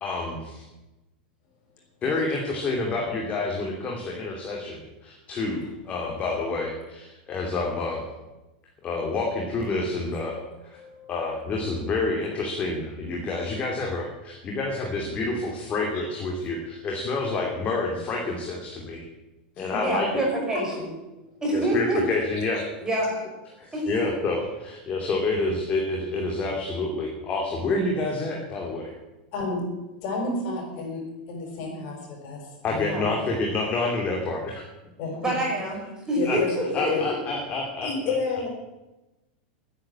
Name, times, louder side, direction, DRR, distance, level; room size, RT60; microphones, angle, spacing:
voice 1, 0.0-0.6 2.0-8.0 8.8-10.8 11.1-19.0 19.6-20.2 21.5-22.6 23.6-28.9 32.6-34.6 36.2-36.4 36.7-38.1, left 3 dB, 25° left, 0 dB, 2.7 m, -28 dB
voice 2, 2.0-2.3 10.7-11.2 15.9-16.1 19.6-20.0 20.3-20.6 22.3-22.7 23.0-23.1 23.5-23.6 29.3-29.6 30.0-33.0 35.0-35.4 36.1-36.6 36.9-37.0 37.8-38.5, left 3 dB, 50° left, 0 dB, 6.0 m, -32 dB
voice 3, 19.8-20.6 21.4-22.0 22.8-23.1 23.7-23.8 32.8-33.1 35.1-36.9, right 1 dB, 10° right, -1 dB, 5.3 m, -26 dB
10.5 x 9.8 x 9.9 m, 1.0 s
supercardioid pair, 135°, 5 cm